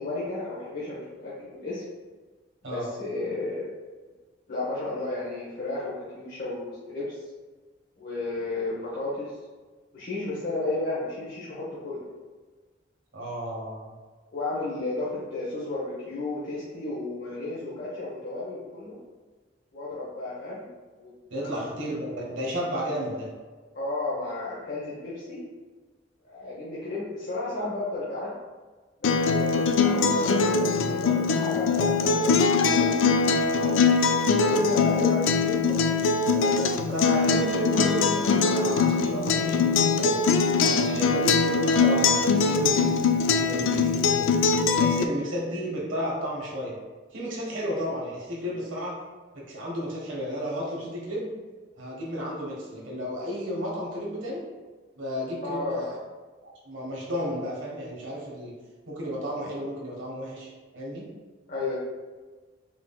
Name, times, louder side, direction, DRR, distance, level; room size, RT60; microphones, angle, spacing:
voice 1, 0.0-1.8 2.7-3.7 4.5-7.2 8.0-9.3 9.9-12.0 14.3-19.0 19.7-20.7 20.9-21.1 21.4-21.6 23.7-25.4 26.2-28.3 29.0-33.9 34.4-36.0 36.3-37.0 55.4-55.8 61.5-61.7, left 2 dB, 50° left, -8 dB, 1.0 m, -33 dB
voice 2, 13.1-14.0 21.3-23.3 36.9-40.2 40.6-44.3 44.8-46.8 47.1-49.0 49.3-51.3 51.8-54.4 54.9-55.9 56.4-58.5 58.9-61.1, equal, 85° right, -4 dB, 1.3 m, -32 dB
Acoustic guitar, 29.0-45.0, left 4 dB, 80° left, 0.3 m, -22 dB
4.8 x 3.7 x 2.3 m, 1.4 s
head